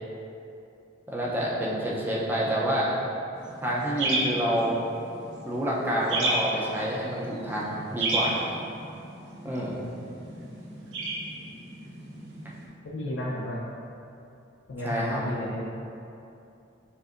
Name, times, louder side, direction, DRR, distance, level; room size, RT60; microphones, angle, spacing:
voice 1, 1.1-2.9 3.6-4.9 5.4-8.4 9.4-9.8 14.8-15.2, equal, 10° right, -5 dB, 0.6 m, -28 dB
sound 1, 3.4-12.7, right 2 dB, 80° right, 0.9 m, -33 dB
voice 2, 12.9-13.6 14.7-15.6, left 1 dB, 80° left, -4 dB, 0.5 m, -32 dB
7.1 x 2.6 x 2.5 m, 2.7 s
head